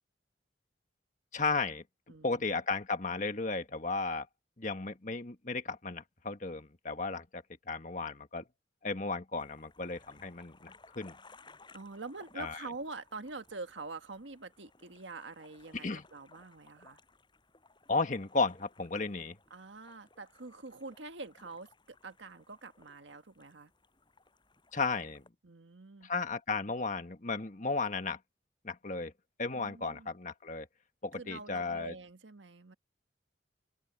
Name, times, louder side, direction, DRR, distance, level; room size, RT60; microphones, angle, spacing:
voice 1, 1.3-1.8 2.2-4.3 4.6-8.4 8.8-11.1 12.4-12.6 15.7-16.0 17.9-19.4 24.7-25.2 26.0-28.2 28.6-29.1 29.4-30.7 31.0-31.9, left 3 dB, 45° left, 1.6 m, -34 dB
voice 2, 2.1-2.6 11.7-17.0 19.5-23.7 25.4-26.1 29.5-30.1 31.2-32.8, right 3 dB, 90° right, 1.6 m, -46 dB
sound 1, 9.4-25.3, left 3 dB, 25° left, 7.6 m, -61 dB
head